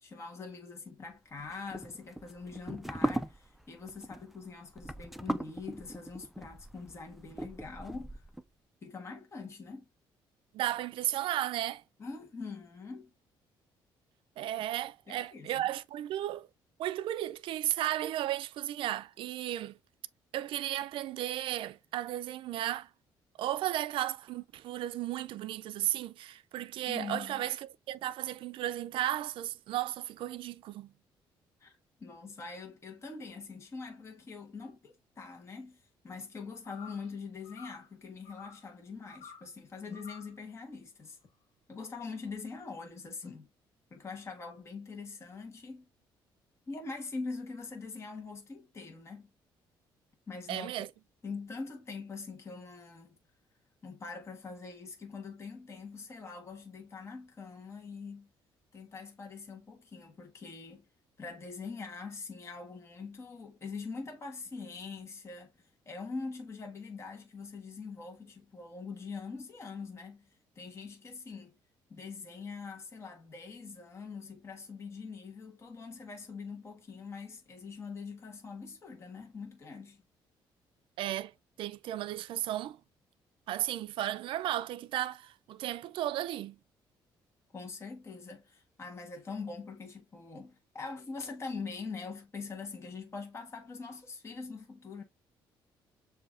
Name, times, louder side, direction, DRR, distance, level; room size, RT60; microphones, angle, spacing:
voice 1, 0.0-8.2 8.8-9.9 12.0-13.1 15.1-15.6 26.9-27.5 31.6-41.2 41.7-43.5 43.9-45.9 46.7-49.3 50.3-50.7 51.2-53.2 53.8-58.3 58.7-60.8 61.2-65.5 65.8-71.5 71.9-80.0 87.5-95.0, left 4 dB, 30° left, 1.3 m, -43 dB
sound 1, 1.4-8.4, right 1 dB, ahead, 0.3 m, -39 dB
voice 2, 10.5-11.8 14.4-16.5 16.8-19.8 20.3-22.9 23.4-30.9 50.5-50.9 81.0-81.3 81.6-82.8 83.5-86.6, right 13 dB, 70° right, 0.4 m, -34 dB
sound 2, 36.7-37.1 37.4-37.9 38.3-38.7 39.1-39.5 39.9-40.4, left 5 dB, 75° left, 1.6 m, -51 dB
6.8 x 2.7 x 2.5 m
cardioid pair, 115°, 9 cm